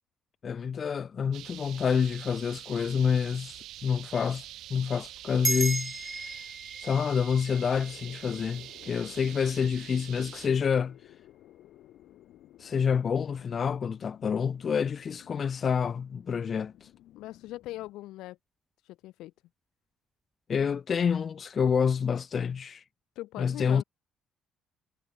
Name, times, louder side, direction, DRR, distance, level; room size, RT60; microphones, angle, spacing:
voice 1, 0.4-6.4 6.8-11.1 12.6-16.9 20.5-22.8 23.4-23.8, left 7 dB, 35° left, 0.4 m, -28 dB
sound 1, 1.3-10.5, right 14 dB, 70° right, 1.3 m, -45 dB
sound 2, 5.4-10.1, right 2 dB, 15° right, 1.0 m, -36 dB
sound 3, 7.8-17.9, left 14 dB, 65° left, 4.8 m, -55 dB
voice 2, 17.1-18.4 18.9-19.3 23.2-23.8, left 17 dB, 80° left, 6.3 m, -41 dB
cardioid pair, 150°, 0 cm